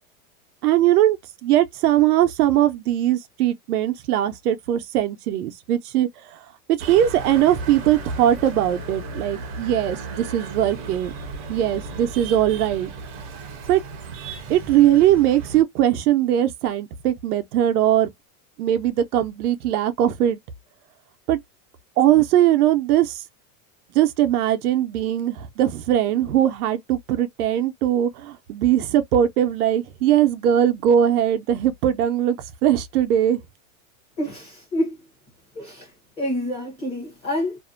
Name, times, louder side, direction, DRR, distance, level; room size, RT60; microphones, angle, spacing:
voice 1, 0.6-1.2 1.4-6.1 6.7-11.1 11.5-12.9 13.7-13.8 14.5-18.1 18.6-20.4 21.3-21.4 22.0-23.2 23.9-33.4, right 11 dB, 90° right, 0.7 m, -20 dB
sound 1, 6.8-15.6, right 4 dB, 35° right, 0.6 m, -35 dB
voice 2, 34.2-35.0 35.5-37.6, left 1 dB, 15° left, 0.7 m, -28 dB
2.6 x 2.1 x 2.4 m
supercardioid pair, 170°, 44 cm